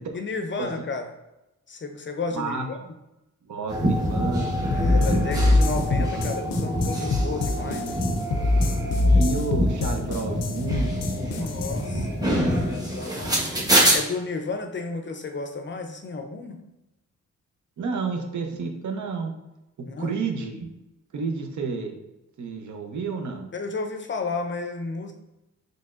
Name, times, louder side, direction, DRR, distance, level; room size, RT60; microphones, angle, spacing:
voice 1, 0.1-1.0 1.7-2.8 4.7-8.0 11.3-16.6 19.9-20.2 23.5-25.1, left 3 dB, 35° left, 5 dB, 0.5 m, -33 dB
voice 2, 2.3-2.7 3.4-4.5 4.9-5.2 5.5-6.3 7.6-8.0 9.1-11.5 11.9-12.2 17.8-19.3 19.8-20.7 21.1-21.9 22.4-23.5, right 4 dB, 65° right, 4 dB, 0.7 m, -31 dB
sound 1, 3.7-14.0, equal, 10° right, 0.9 m, -26 dB
sound 2, 4.7-11.8, left 2 dB, 85° left, 0.5 m, -23 dB
4.1 x 3.2 x 2.4 m, 0.94 s
cardioid pair, 105°, 32 cm